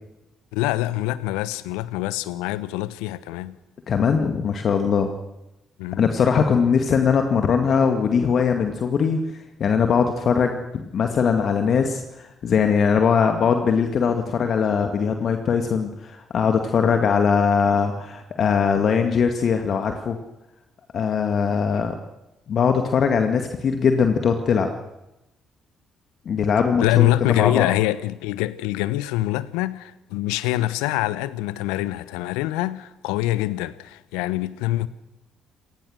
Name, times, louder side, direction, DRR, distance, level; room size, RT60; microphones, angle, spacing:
voice 1, 0.5-3.6 5.8-6.1 26.8-34.9, left 16 dB, 75° left, 1.0 m, -24 dB
voice 2, 3.9-5.1 6.0-9.2 9.6-20.2 20.9-21.9 22.5-24.7 26.3-27.7, left 6 dB, 55° left, 2.1 m, -21 dB
26.5 x 19.0 x 6.6 m
hypercardioid pair, 45°, 0 cm